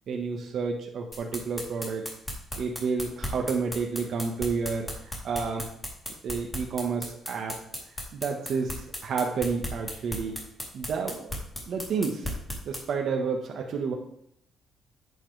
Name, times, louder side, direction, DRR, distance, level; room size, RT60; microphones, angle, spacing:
voice 1, 0.1-2.0 2.6-4.9 5.2-5.7 6.2-7.6 8.1-10.4 10.7-11.4 11.7-12.3 12.6-13.9, right 5 dB, 65° right, 1 dB, 1.4 m, -30 dB
sound 1, 1.1-12.8, left 1 dB, 10° left, 3.4 m, -35 dB
10.0 x 8.8 x 3.4 m, 0.69 s
cardioid pair, 90°, 0 cm